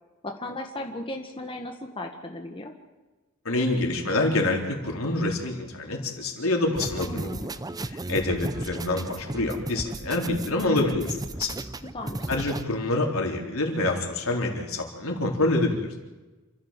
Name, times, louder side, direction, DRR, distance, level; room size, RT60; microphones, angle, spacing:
voice 1, 0.2-2.7 7.0-7.5 11.9-12.3, left 1 dB, 25° left, 3 dB, 1.7 m, -36 dB
voice 2, 3.5-7.3 7.9-11.5 12.3-16.0, left 2 dB, 80° left, 1 dB, 3.9 m, -26 dB
sound 1, 6.7-12.6, right 2 dB, 20° right, 0.6 m, -35 dB
28.0 x 13.5 x 7.5 m, 1.2 s
head